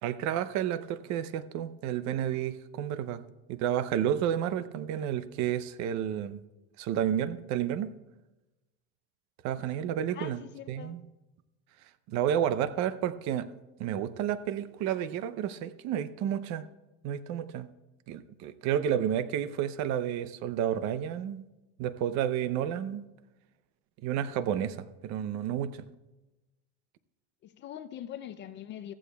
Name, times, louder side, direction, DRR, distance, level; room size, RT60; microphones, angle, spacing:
voice 1, 0.0-3.2 3.5-6.4 6.8-7.9 9.4-10.4 10.7-11.0 12.1-13.5 13.8-16.7 17.0-17.7 18.1-21.4 21.8-23.0 24.0-25.9, right 10 dB, 50° right, 0.6 m, -31 dB
voice 2, 9.6-11.0 27.4-28.9, left 11 dB, 35° left, 0.4 m, -43 dB
15.0 x 15.0 x 2.3 m
cardioid pair, 155°, 35 cm